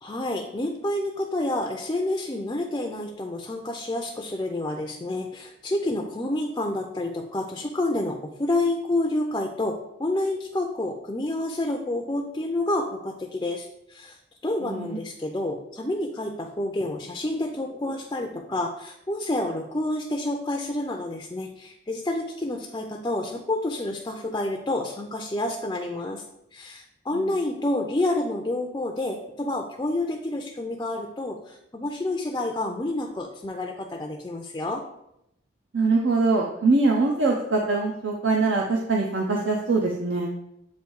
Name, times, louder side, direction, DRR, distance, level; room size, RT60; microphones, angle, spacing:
voice 1, 0.0-14.2 14.4-26.2 26.5-34.8, left 1 dB, 20° left, 2 dB, 0.4 m, -29 dB
voice 2, 14.6-15.0 27.1-27.3 35.7-40.3, right 3 dB, 70° right, -1 dB, 0.7 m, -23 dB
8.0 x 2.7 x 4.6 m, 0.81 s
head